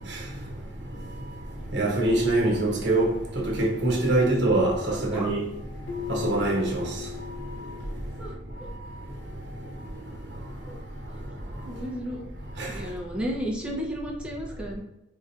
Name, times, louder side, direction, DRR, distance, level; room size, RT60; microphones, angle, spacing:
voice 1, 1.7-3.1 3.4-5.4 6.1-6.8 12.6-12.7, right 2 dB, 70° right, 1.2 m, -23 dB
voice 2, 4.9-5.3 8.2-8.4 10.6-10.7 11.6-12.3 12.7-14.8, equal, 5° right, 0.7 m, -33 dB
Keyboard (musical), 5.9-8.7, left 10 dB, 80° left, 0.7 m, -39 dB
4.7 x 2.9 x 2.4 m
head